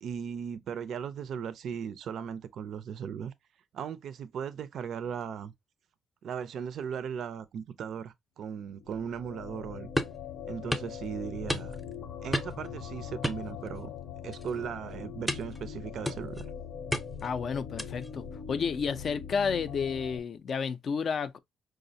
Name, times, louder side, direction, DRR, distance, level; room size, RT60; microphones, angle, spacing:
voice 1, 0.0-3.3 3.7-5.5 6.2-9.9 10.5-11.8 12.2-13.9 14.2-16.4, right 7 dB, 70° right, 0.4 m, -37 dB
sound 1, 8.7-20.2, left 7 dB, 85° left, 0.7 m, -42 dB
sound 2, 10.0-10.2 10.7-10.9 11.5-11.9 12.3-12.7 13.2-14.0 14.3-14.6 15.3-15.6 16.0-16.4 16.9-17.3 17.8-18.1, left 1 dB, 5° left, 0.6 m, -33 dB
voice 2, 17.2-21.4, left 6 dB, 55° left, 0.4 m, -31 dB
4.8 x 2.0 x 2.6 m
cardioid pair, 90°, 0 cm